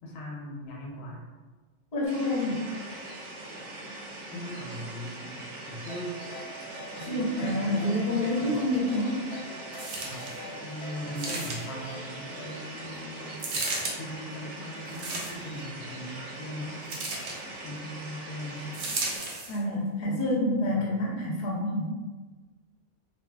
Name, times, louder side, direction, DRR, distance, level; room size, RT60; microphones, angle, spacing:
voice 1, 0.0-1.3 4.3-6.2 7.0-8.6 10.0-13.4 14.0-16.9 17.6-18.8 20.7-20.9, equal, 90° left, -1 dB, 1.0 m, -40 dB
voice 2, 1.9-2.6 6.9-9.2 19.5-21.9, left 1 dB, 45° left, -4 dB, 0.7 m, -28 dB
sound 1, 2.0-19.2, right 1 dB, 80° right, 1.1 m, -42 dB
Ringtone, 5.9-12.8, right 1 dB, 70° left, 0.3 m, -44 dB
sound 2, 9.7-10.4 11.2-11.9 13.4-14.0 14.9-15.6 16.9-17.4 18.7-19.6 20.3-20.4, right 2 dB, 60° right, 0.5 m, -34 dB
2.6 x 2.4 x 2.3 m, 1.3 s
omnidirectional pair, 1.3 m